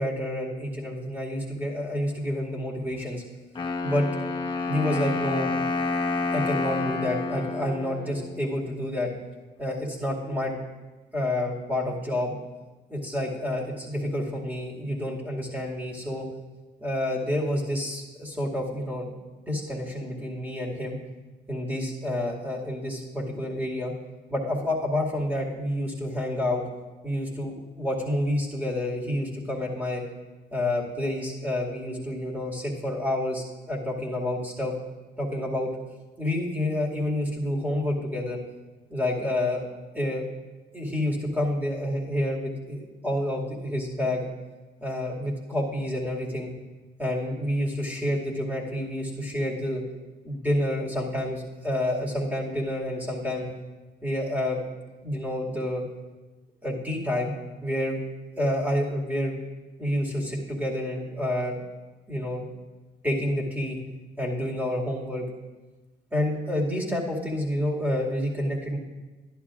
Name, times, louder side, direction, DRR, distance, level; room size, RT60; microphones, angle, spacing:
voice 1, 0.0-3.2 3.8-4.1 4.7-5.5 6.3-9.1 9.6-10.5 11.1-12.3 12.9-16.3 16.8-19.1 19.5-21.0 21.5-23.9 24.3-26.6 27.0-30.0 30.5-34.7 35.2-35.7 36.2-38.4 38.9-39.6 39.9-40.3 40.7-44.2 44.8-46.5 47.0-49.8 50.2-53.4 54.0-54.6 55.0-55.8 56.6-57.3 57.6-58.0 58.4-59.4 59.8-61.6 62.1-62.5 63.0-63.8 64.2-65.2 66.1-68.8, left 1 dB, 10° right, -3 dB, 2.2 m, -28 dB
Wind instrument woodwind instrument, 3.5-8.5, left 3 dB, 25° left, 1.0 m, -29 dB
11.5 x 11.0 x 2.5 m, 1.2 s
cardioid pair, 90°, 20 cm